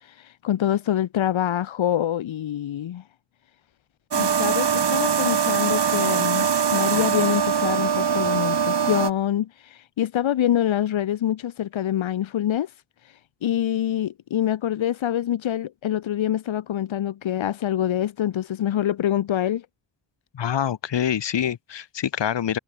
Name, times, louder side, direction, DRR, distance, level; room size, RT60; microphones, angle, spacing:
voice 1, 0.0-3.0 4.1-12.7 13.4-19.7, left 11 dB, 85° left, 1.1 m, -25 dB
sound 1, 4.1-9.1, right 7 dB, 60° right, 3.1 m, -22 dB
voice 2, 20.3-22.6, left 9 dB, 65° left, 1.3 m, -25 dB
wide cardioid pair, 130°, 46 cm